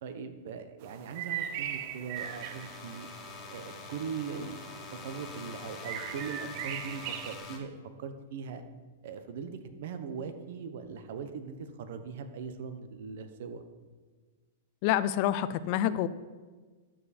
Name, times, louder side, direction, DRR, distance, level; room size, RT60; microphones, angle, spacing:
voice 1, 0.0-3.1 3.5-8.6 9.0-13.6, right 6 dB, 65° right, 9 dB, 1.2 m, -40 dB
sound 1, 0.8-7.4, right 10 dB, 45° right, 0.8 m, -40 dB
sound 2, 2.1-7.6, left 4 dB, 25° left, 1.8 m, -45 dB
voice 2, 14.8-16.1, left 12 dB, 45° left, 14 dB, 0.6 m, -27 dB
12.0 x 7.7 x 4.4 m, 1.4 s
hypercardioid pair, 145°, 0 cm